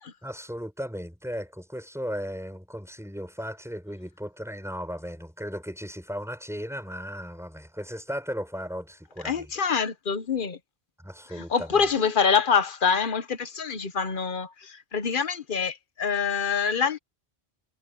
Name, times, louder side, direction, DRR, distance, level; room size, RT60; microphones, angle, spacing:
voice 1, 0.2-9.5 11.0-11.8, equal, ahead, 4.8 m, -36 dB
voice 2, 9.2-10.6 11.3-17.0, left 6 dB, 50° left, 1.2 m, -25 dB
omnidirectional pair, 1.1 m